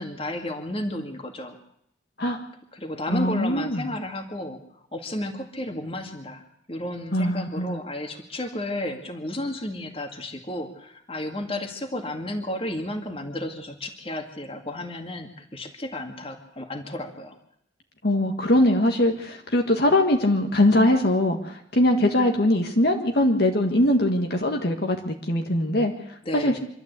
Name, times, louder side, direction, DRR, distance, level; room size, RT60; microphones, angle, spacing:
voice 1, 0.0-1.6 2.7-4.6 4.9-6.4 6.7-17.4 26.3-26.6, left 1 dB, 30° left, 5 dB, 2.2 m, -32 dB
voice 2, 3.1-3.9 7.1-7.8 18.0-26.6, left 1 dB, 60° left, 3 dB, 1.7 m, -22 dB
25.5 x 12.5 x 8.3 m, 0.73 s
head